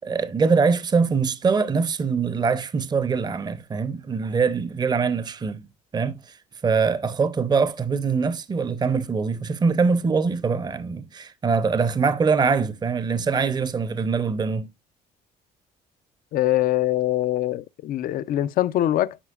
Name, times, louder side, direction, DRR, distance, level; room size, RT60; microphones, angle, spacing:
voice 1, 0.0-5.7 5.9-6.4 6.6-14.7, right 5 dB, 25° right, 0.7 m, -23 dB
voice 2, 16.3-19.2, left 14 dB, 60° left, 0.5 m, -23 dB
10.0 x 5.0 x 2.4 m
cardioid pair, 110°, 17 cm